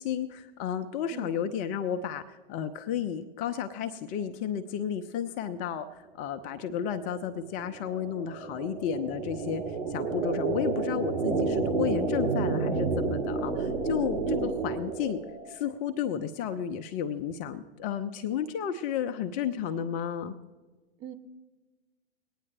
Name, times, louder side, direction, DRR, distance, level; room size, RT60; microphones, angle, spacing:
voice 1, 0.0-20.4, left 8 dB, 25° left, 9 dB, 0.5 m, -32 dB
voice 2, 1.1-1.3 14.2-14.5 21.0-21.2, right 9 dB, 35° right, 8 dB, 1.0 m, -41 dB
sound 1, 6.7-15.6, right 4 dB, 85° right, 1.7 m, -30 dB
21.0 x 9.5 x 3.3 m, 1.3 s
hypercardioid pair, 110°, 33 cm